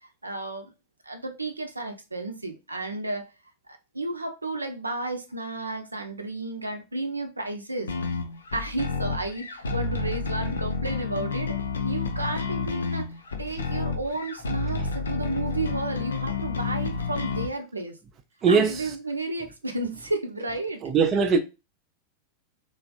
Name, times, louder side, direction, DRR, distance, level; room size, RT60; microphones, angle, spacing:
voice 1, 0.2-0.7 1.0-3.3 3.7-7.9 8.5-11.6 11.8-13.1 13.4-18.0 18.5-20.8, right 2 dB, 80° right, 0.5 m, -32 dB
sound 1, 7.9-17.5, left 4 dB, 70° left, 0.4 m, -30 dB
voice 2, 20.8-21.4, right 5 dB, 30° right, 0.5 m, -20 dB
3.3 x 2.5 x 2.3 m
figure-of-eight pair, 90°, 0 cm